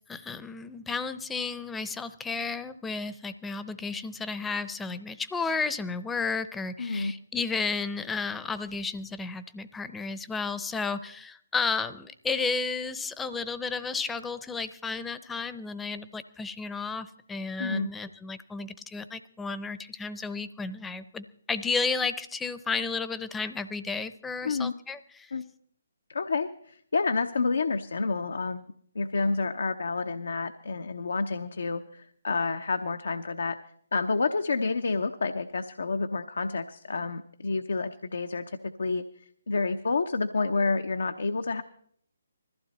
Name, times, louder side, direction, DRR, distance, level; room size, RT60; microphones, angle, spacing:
voice 1, 0.1-25.3, left 4 dB, 10° left, 13 dB, 0.8 m, -33 dB
voice 2, 6.8-7.1 17.6-17.9 24.4-24.7 25.3-25.5 26.1-28.7 28.9-33.6 33.9-39.0 39.5-41.6, left 4 dB, 70° left, 8 dB, 0.8 m, -29 dB
21.0 x 15.0 x 4.2 m, 0.64 s
figure-of-eight pair, 140°, 0 cm